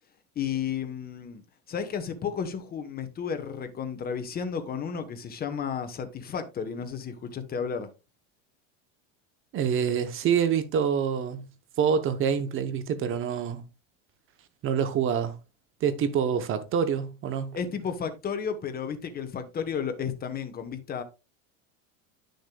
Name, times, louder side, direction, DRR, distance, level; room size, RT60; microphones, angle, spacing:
voice 1, 0.4-1.4 1.7-7.9 17.5-21.0, left 7 dB, 25° left, 1.0 m, -33 dB
voice 2, 9.5-11.4 11.8-13.6 14.6-15.4 15.8-17.6, right 7 dB, 35° right, 0.9 m, -26 dB
10.0 x 6.5 x 2.3 m
supercardioid pair, 135°, 38 cm